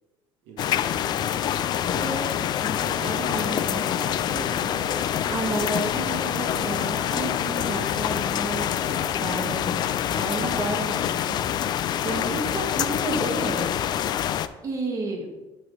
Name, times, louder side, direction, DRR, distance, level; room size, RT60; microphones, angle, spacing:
voice 1, 0.4-2.2 2.7-6.2, right 5 dB, 90° right, 0 dB, 1.2 m, -46 dB
sound 1, 0.6-14.5, left 10 dB, 50° left, 0.3 m, -26 dB
Laughter, 1.7-6.8, right 1 dB, 50° right, 2.0 m, -37 dB
voice 2, 3.2-4.2 5.3-11.4 12.0-13.7 14.6-15.3, right 2 dB, 35° right, 1 dB, 1.6 m, -31 dB
11.0 x 4.2 x 3.1 m, 1.1 s
cardioid pair, 120°, 10 cm